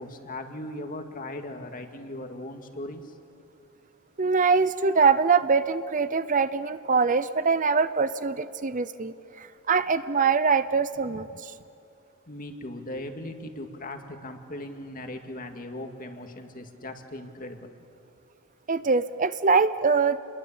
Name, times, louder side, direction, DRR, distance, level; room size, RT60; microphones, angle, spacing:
voice 1, 0.0-3.1 12.3-17.7, left 1 dB, 40° left, 5 dB, 2.2 m, -38 dB
voice 2, 4.2-11.5 18.7-20.2, right 5 dB, 35° right, 13 dB, 0.7 m, -23 dB
29.0 x 22.0 x 8.7 m, 2.6 s
head